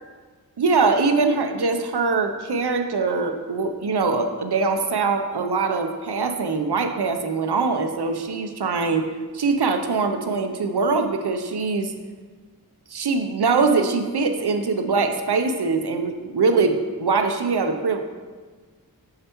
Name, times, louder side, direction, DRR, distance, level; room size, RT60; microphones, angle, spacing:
voice 1, 0.6-9.1 9.3-11.9 12.9-18.0, right 4 dB, 80° right, 6 dB, 0.7 m, -22 dB
6.6 x 6.6 x 3.0 m, 1.4 s
wide cardioid pair, 40°, 39 cm